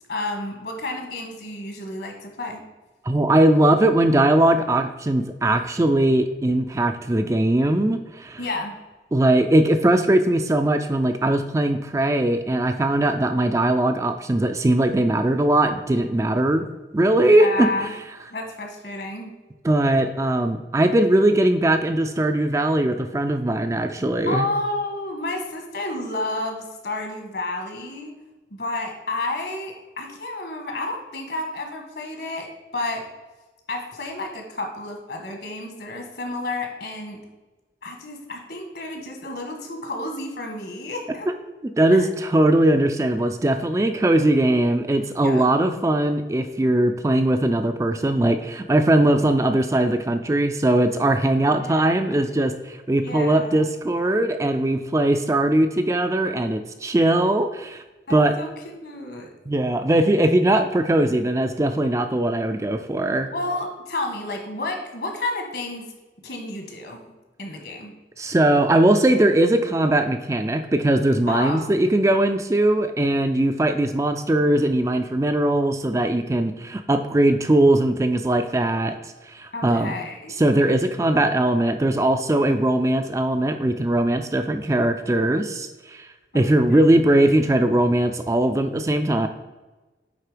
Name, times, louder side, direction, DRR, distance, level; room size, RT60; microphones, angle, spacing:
voice 1, 0.1-2.6 8.4-8.8 17.2-17.9 18.3-19.3 24.3-28.2 28.5-33.1 33.7-37.2 37.8-41.3 41.9-42.1 45.2-45.5 51.5-52.2 53.0-53.6 58.1-59.3 63.3-65.9 66.2-67.1 67.4-67.9 71.3-71.7 79.5-80.4 86.3-86.8, left 2 dB, 65° left, 3 dB, 1.5 m, -31 dB
voice 2, 3.0-8.4 9.1-16.6 16.9-17.9 19.6-24.5 41.8-57.8 58.1-58.3 59.5-63.3 68.2-78.9 79.2-79.9 80.4-86.1 86.3-89.3, right 1 dB, 15° right, 7 dB, 0.3 m, -20 dB
9.1 x 3.8 x 5.0 m, 1.2 s
head